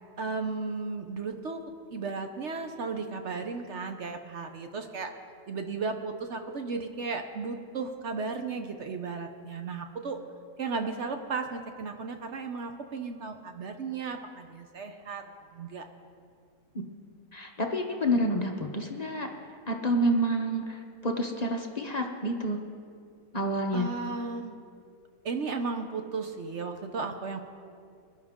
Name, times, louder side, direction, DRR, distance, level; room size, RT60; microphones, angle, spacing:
voice 1, 0.2-1.6 1.9-5.1 5.5-10.2 10.6-15.2 15.5-15.8 23.7-24.6 25.2-27.4, right 4 dB, 55° right, 6 dB, 0.8 m, -35 dB
voice 2, 17.3-19.3 19.7-22.6 23.3-23.9, equal, 35° left, 2 dB, 0.6 m, -28 dB
21.0 x 11.5 x 3.6 m, 2.3 s
omnidirectional pair, 1.8 m